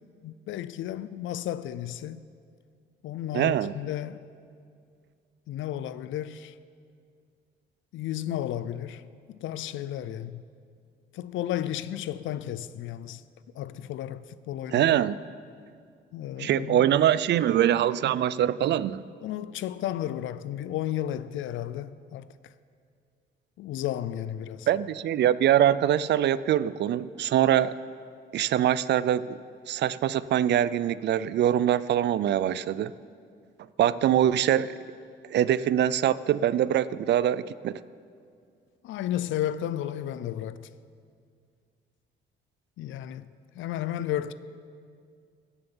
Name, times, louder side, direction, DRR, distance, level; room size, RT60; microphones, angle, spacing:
voice 1, 0.2-2.2 3.0-4.2 5.5-6.5 7.9-10.4 11.1-13.2 13.5-15.0 16.1-17.1 19.2-22.3 23.6-24.7 38.8-40.7 42.8-43.3 43.5-44.3, left 12 dB, 75° left, 0.5 m, -33 dB
voice 2, 3.3-3.7 14.7-15.2 16.4-19.0 24.7-27.7 28.3-29.4 29.7-32.9 33.8-34.7 35.3-37.8, right 11 dB, 60° right, 0.4 m, -23 dB
16.0 x 6.9 x 7.1 m
cardioid pair, 90°, 20 cm